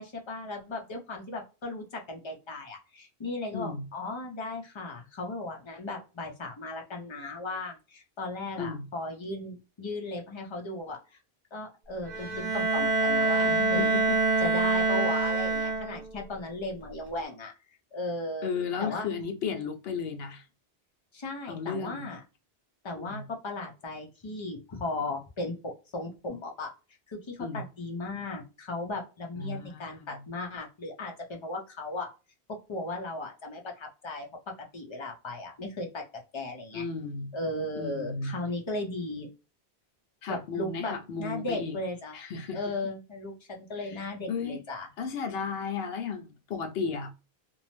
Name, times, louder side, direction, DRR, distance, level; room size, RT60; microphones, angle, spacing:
voice 1, 0.0-11.2 11.5-14.0 14.4-17.5 17.9-18.5 18.8-19.1 21.1-22.2 22.8-26.7 27.1-32.1 32.5-36.0 36.3-36.9 37.3-39.3 40.3-42.2 42.5-44.9, left 2 dB, 35° left, 0.6 m, -36 dB
voice 2, 3.5-3.8 8.6-8.9 13.4-14.4 18.4-20.4 21.5-22.1 23.0-23.2 27.4-27.6 29.4-30.2 36.7-37.3 37.8-38.3 40.2-41.8 42.1-42.6 43.8-44.0 44.3-44.6 45.0-47.1, left 5 dB, 70° left, 0.8 m, -34 dB
Bowed string instrument, 12.1-16.2, right 3 dB, 45° right, 0.9 m, -26 dB
2.6 x 2.0 x 3.0 m
omnidirectional pair, 1.1 m